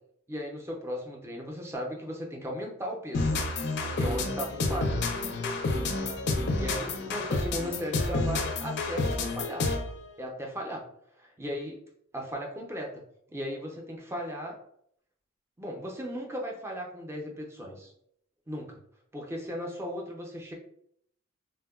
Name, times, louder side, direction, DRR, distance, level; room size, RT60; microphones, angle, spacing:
voice 1, 0.3-3.3 3.8-5.0 6.6-9.6 10.2-10.9 11.2-11.8 12.1-13.0 13.3-14.6 15.6-17.9 18.5-18.8 19.1-20.5, equal, 10° right, 0 dB, 0.4 m, -36 dB
sound 1, 3.1-10.0, left 2 dB, 55° left, 0.4 m, -29 dB
3.5 x 2.2 x 2.3 m, 0.69 s
head